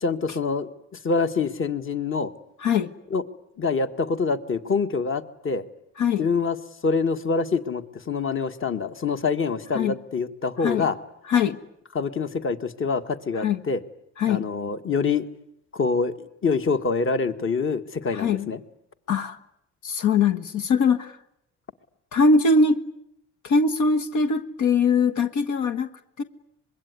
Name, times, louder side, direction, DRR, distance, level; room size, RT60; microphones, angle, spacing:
voice 1, 0.0-0.7 1.0-2.3 3.1-3.2 3.6-5.6 6.2-6.6 6.8-11.0 12.0-13.8 14.3-15.3 15.7-18.6, left 4 dB, 40° left, 10 dB, 1.7 m, -25 dB
voice 2, 2.6-2.9 6.0-6.3 9.7-10.0 10.6-10.9 11.3-11.6 13.4-13.6 14.2-14.5 18.1-18.5 19.1-19.4 19.8-21.2 22.1-22.8 23.4-25.9 26.2-26.3, left 4 dB, 75° left, 8 dB, 1.5 m, -21 dB
25.5 x 22.0 x 9.6 m, 0.78 s
cardioid pair, 90°, 30 cm